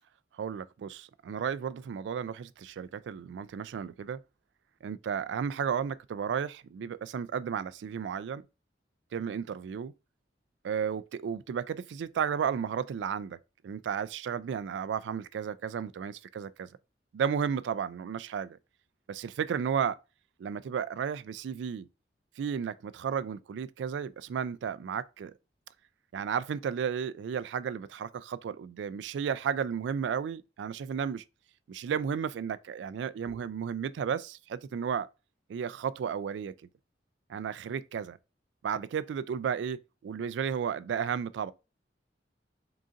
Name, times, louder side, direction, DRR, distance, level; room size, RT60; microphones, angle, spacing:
voice 1, 0.4-4.2 4.8-8.4 9.1-9.9 10.6-13.4 13.6-16.7 17.1-18.6 19.1-20.0 20.4-21.9 22.4-25.3 26.1-31.2 31.7-35.1 35.5-36.5 37.3-38.2 38.6-41.5, right 7 dB, 75° right, 0.3 m, -33 dB
3.8 x 3.8 x 2.4 m
head